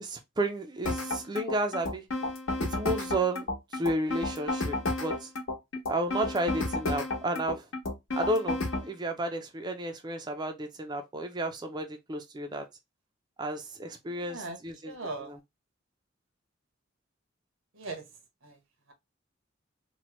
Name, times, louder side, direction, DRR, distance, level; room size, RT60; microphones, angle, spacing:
voice 1, 0.0-2.0 2.6-3.4 3.7-5.3 5.9-7.6 8.2-12.6 13.4-14.9 15.3-15.4, right 1 dB, 20° right, 0.4 m, -32 dB
sound 1, 0.8-8.9, left 2 dB, 75° left, 0.9 m, -31 dB
voice 2, 14.1-14.6 14.8-15.4 17.7-18.1 18.4-18.6, right 3 dB, 85° right, 0.9 m, -39 dB
3.0 x 2.1 x 2.9 m
head